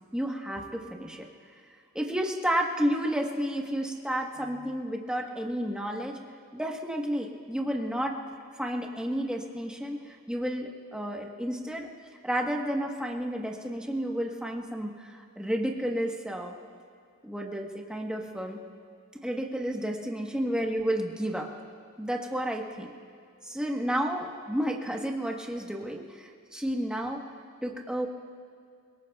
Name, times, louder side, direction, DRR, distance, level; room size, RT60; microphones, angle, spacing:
voice 1, 0.1-1.3 1.9-6.2 6.5-8.2 8.6-11.9 12.2-16.5 17.2-18.6 19.1-21.5 22.0-22.9 23.4-27.2 27.6-28.1, equal, 5° right, 0 dB, 1.2 m, -31 dB
27.5 x 18.5 x 2.4 m, 2.2 s
head